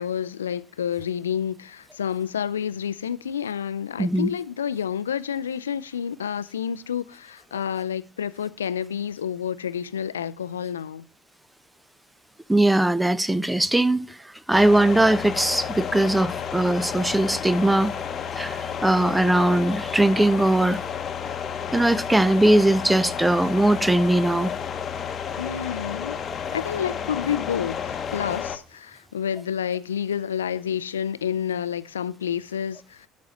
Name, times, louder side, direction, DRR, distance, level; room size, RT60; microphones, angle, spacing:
voice 1, 0.0-11.0 25.4-26.2 26.5-33.1, left 8 dB, 85° left, 0.4 m, -29 dB
voice 2, 4.0-4.3 12.5-14.2 14.5-17.9 18.3-20.8 21.7-24.5, right 1 dB, 10° right, 0.6 m, -20 dB
sound 1, 14.5-28.6, left 7 dB, 40° left, 0.9 m, -31 dB
11.5 x 4.2 x 4.9 m
hypercardioid pair, 60°, 0 cm